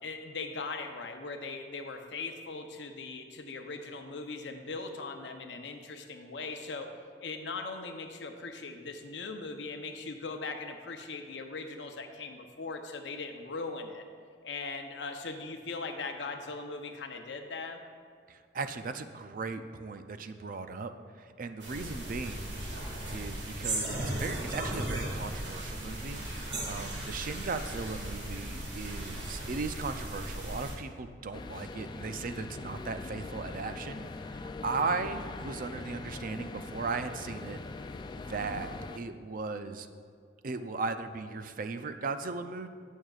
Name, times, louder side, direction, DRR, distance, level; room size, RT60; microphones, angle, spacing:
voice 1, 0.0-6.9 7.2-14.0 14.4-17.8, left 3 dB, 80° left, 5 dB, 0.7 m, -39 dB
voice 2, 18.3-22.6 23.1-37.6 38.2-39.9 40.4-42.7, right 4 dB, 50° right, 9 dB, 0.5 m, -37 dB
sound 1, 21.6-30.7, right 1 dB, 85° right, 1.9 m, -37 dB
sound 2, 31.3-39.0, left 3 dB, 25° left, 0.3 m, -42 dB
18.0 x 6.4 x 2.4 m, 2.1 s
head